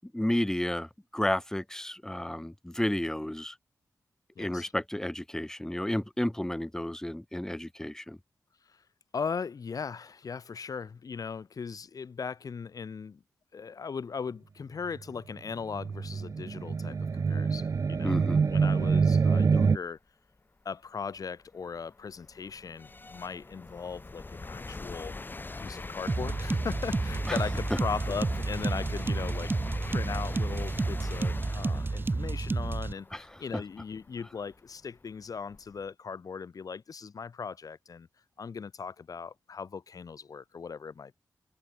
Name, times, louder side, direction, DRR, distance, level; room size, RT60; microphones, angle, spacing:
voice 1, 0.0-3.5 4.4-8.2 18.0-18.4 27.3-27.4 27.7-27.8 33.1-33.2 33.5-33.6, left 1 dB, 10° left, 6.7 m, -32 dB
voice 2, 4.4-4.7 8.7-8.8 9.1-13.2 13.5-20.0 20.7-25.1 25.6-29.5 29.8-38.1 38.4-41.2, left 5 dB, 60° left, 5.4 m, -38 dB
sound 1, 15.7-19.8, right 5 dB, 50° right, 1.2 m, -26 dB
sound 2, 20.4-20.5 21.1-35.9, left 3 dB, 30° left, 6.5 m, -43 dB
sound 3, 26.1-32.9, right 3 dB, 30° right, 5.8 m, -31 dB
wide cardioid pair, 90°, 7 cm